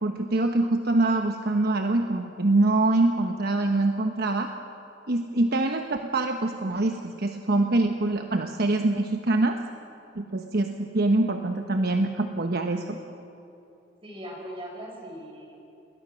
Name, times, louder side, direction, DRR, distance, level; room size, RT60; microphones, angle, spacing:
voice 1, 0.0-4.5 5.1-9.6 10.1-13.0, right 2 dB, 60° right, 5 dB, 1.1 m, -24 dB
voice 2, 14.0-15.5, equal, 30° right, -1 dB, 6.3 m, -39 dB
28.0 x 20.5 x 6.3 m, 2.9 s
head